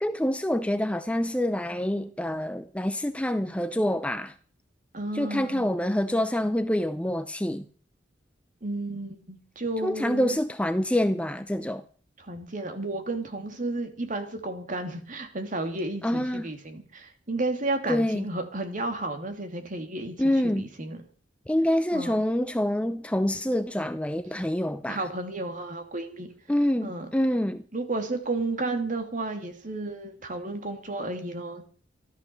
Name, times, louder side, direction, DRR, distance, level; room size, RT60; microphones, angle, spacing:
voice 1, 0.0-4.3 5.1-7.6 9.8-11.8 16.0-16.5 17.9-18.2 20.2-20.6 21.5-25.0 26.5-27.6, left 1 dB, 5° left, 0.6 m, -26 dB
voice 2, 4.9-5.7 8.6-10.4 12.2-21.0 21.9-22.2 24.9-26.3 26.8-27.1 27.7-31.6, right 2 dB, 45° right, 2.8 m, -32 dB
13.5 x 13.0 x 7.0 m
head